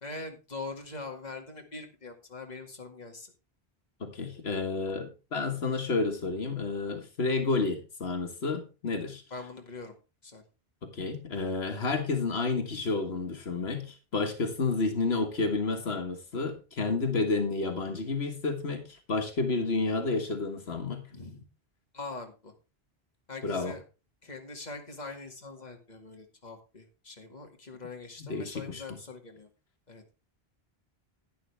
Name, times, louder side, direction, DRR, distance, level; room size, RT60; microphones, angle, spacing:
voice 1, 0.0-3.3 9.3-9.9 10.2-10.4 21.1-21.4 21.9-22.5 23.3-23.8 24.2-29.5 29.9-30.0, left 3 dB, 45° left, 3 dB, 2.2 m, -42 dB
voice 2, 4.0-9.2 10.8-21.1 23.4-23.8 28.2-29.0, left 3 dB, 85° left, 5 dB, 1.8 m, -30 dB
11.5 x 10.0 x 3.4 m, 0.30 s
omnidirectional pair, 1.0 m